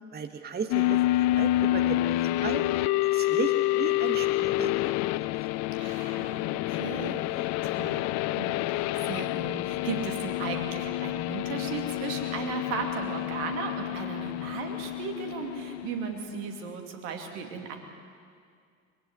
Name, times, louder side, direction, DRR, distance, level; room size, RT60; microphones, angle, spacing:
voice 1, 0.1-2.0 2.4-2.6 3.0-4.9, right 6 dB, 25° right, 8 dB, 1.3 m, -35 dB
sound 1, 0.7-16.4, left 16 dB, 45° left, 0.5 m, -28 dB
voice 2, 5.8-8.1 8.4-17.8, right 5 dB, 65° right, 4 dB, 2.7 m, -36 dB
23.0 x 16.0 x 9.8 m, 2.2 s
figure-of-eight pair, 60°, 40 cm